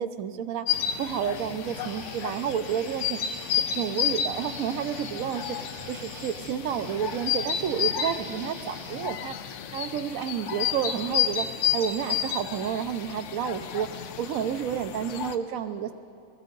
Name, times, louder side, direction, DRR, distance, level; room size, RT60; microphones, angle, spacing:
voice 1, 0.0-3.4 3.7-9.4 9.7-11.5 11.7-15.9, right 8 dB, 85° right, 10 dB, 1.0 m, -30 dB
sound 1, 0.7-15.4, left 9 dB, 70° left, 0.9 m, -31 dB
sound 2, 1.3-9.1, right 1 dB, 45° right, 2.0 m, -45 dB
19.5 x 14.5 x 3.8 m, 2.4 s
omnidirectional pair, 1.4 m